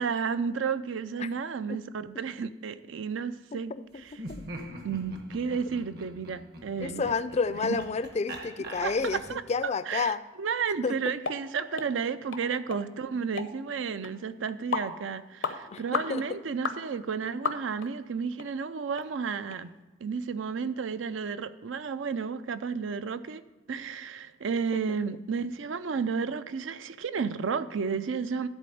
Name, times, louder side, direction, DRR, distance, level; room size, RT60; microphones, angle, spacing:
voice 1, 0.0-4.2 4.8-7.1 7.6-7.8 8.8-9.4 9.9-19.7 20.0-23.4 23.7-28.5, right 5 dB, 80° right, 13 dB, 0.5 m, -32 dB
voice 2, 3.9-4.4 6.8-10.2 10.8-11.0 15.7-16.4 24.7-25.0, left 4 dB, 35° left, 13 dB, 0.4 m, -30 dB
Laughter, 4.1-9.5, right 1 dB, 60° right, 1.1 m, -43 dB
sound 1, 11.2-11.4 11.8-11.9 12.3-12.4 12.7-12.8 13.4-13.5 14.0-14.1 14.7-14.9 15.4-15.6 15.9-16.1 16.6-16.8 17.5-17.9 18.4-18.5 19.0-19.1 19.5-19.6, left 5 dB, 75° left, 0.7 m, -32 dB
10.5 x 4.2 x 7.8 m, 1.2 s
head